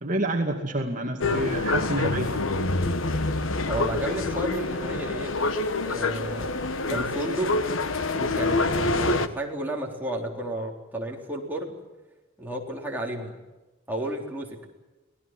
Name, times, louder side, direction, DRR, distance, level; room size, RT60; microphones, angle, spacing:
voice 1, 0.0-2.4, right 1 dB, 40° right, 2 dB, 2.2 m, -28 dB
sound 1, 1.2-9.3, left 2 dB, 90° left, 1.3 m, -26 dB
voice 2, 3.7-5.4 5.8-6.6 6.9-7.5 8.0-11.7 12.4-13.4 13.9-14.7, right 1 dB, 10° right, -1 dB, 4.0 m, -32 dB
25.5 x 18.5 x 7.7 m, 1.1 s
head